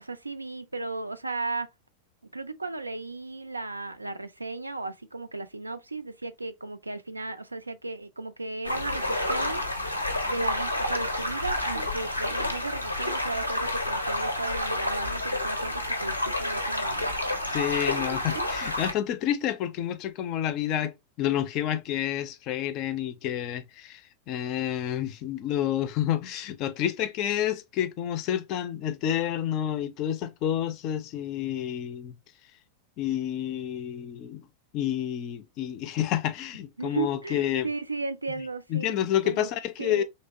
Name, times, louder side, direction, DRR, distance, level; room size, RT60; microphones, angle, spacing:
voice 1, 0.0-1.7 2.3-9.6 10.2-17.1 36.8-39.5 39.8-40.0, right 3 dB, 80° right, 0.3 m, -35 dB
sound 1, 8.6-18.9, left 1 dB, 90° left, 0.5 m, -29 dB
voice 2, 17.5-24.0 24.3-32.1 33.0-34.4 34.7-37.7 38.7-40.0, left 11 dB, 40° left, 0.4 m, -29 dB
3.1 x 2.8 x 2.5 m
figure-of-eight pair, 90°, 0 cm